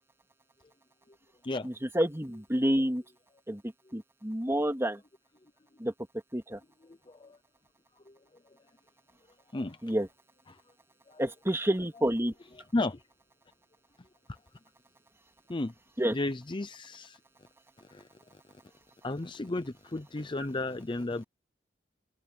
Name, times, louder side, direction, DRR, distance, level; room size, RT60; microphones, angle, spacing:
voice 1, 1.6-3.0 3.5-5.0 5.8-5.9 6.3-6.6 9.8-10.1 11.2-12.3 16.0-16.2, right 1 dB, 15° right, 2.7 m, -29 dB
voice 2, 7.1-7.4 8.1-8.2 9.5-9.8 10.5-10.6 11.1-11.2 12.7-13.0 15.5-15.7 16.1-17.2 17.9-18.0 19.0-21.2, left 2 dB, 25° left, 0.6 m, -33 dB
head